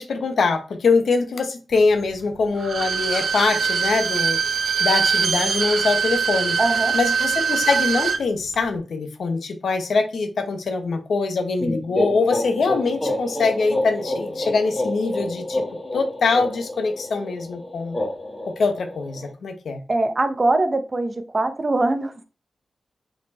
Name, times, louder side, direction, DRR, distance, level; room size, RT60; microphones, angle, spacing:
voice 1, 0.0-4.4 4.8-6.5 6.9-15.6 15.9-18.0 18.4-19.8, left 4 dB, 80° left, 7 dB, 1.0 m, -23 dB
Bowed string instrument, 2.6-8.2 8.5-8.6, right 6 dB, 80° right, 0.6 m, -22 dB
voice 2, 6.6-6.9 19.9-22.2, right 2 dB, 30° right, 8 dB, 0.8 m, -22 dB
sound 1, 11.6-19.3, left 1 dB, 15° left, 1.7 m, -28 dB
5.1 x 4.5 x 4.1 m, 0.34 s
wide cardioid pair, 150°, 0 cm